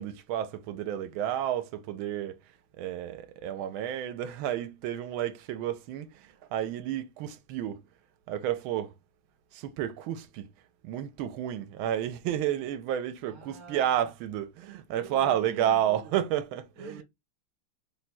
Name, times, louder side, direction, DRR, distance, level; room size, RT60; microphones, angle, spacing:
voice 1, 0.0-7.8 8.3-8.9 9.5-10.5 10.8-17.0, right 11 dB, 80° right, 1.4 m, -31 dB
voice 2, 13.3-14.1 15.0-16.2 16.8-17.0, right 3 dB, 50° right, 1.0 m, -46 dB
4.5 x 2.2 x 4.1 m
omnidirectional pair, 2.3 m